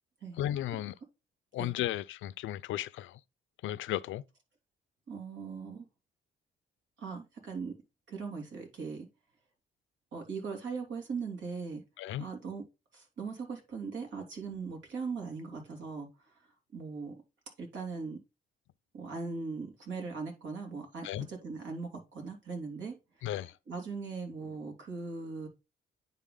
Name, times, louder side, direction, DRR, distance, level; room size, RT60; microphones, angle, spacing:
voice 1, 0.4-0.9 1.5-3.2 3.6-4.2 12.0-12.3 21.0-21.3 23.2-23.5, left 13 dB, 80° left, 0.5 m, -34 dB
voice 2, 5.1-5.8 7.0-7.7 8.1-9.1 10.1-11.8 12.2-12.6 12.9-16.1 16.7-17.1 17.6-18.2 18.9-23.0 23.7-25.5, right 4 dB, 70° right, 3.1 m, -39 dB
9.9 x 3.9 x 3.8 m
cardioid pair, 90°, 20 cm